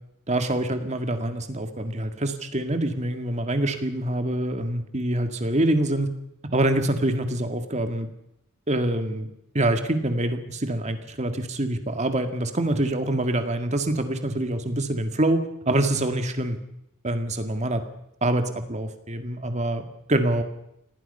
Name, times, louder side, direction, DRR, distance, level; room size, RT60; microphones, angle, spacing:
voice 1, 0.3-6.1 6.5-8.1 8.7-9.3 9.5-16.6 17.0-17.8 18.2-20.4, right 1 dB, 30° right, 7 dB, 2.0 m, -25 dB
26.5 x 19.0 x 5.6 m, 0.80 s
head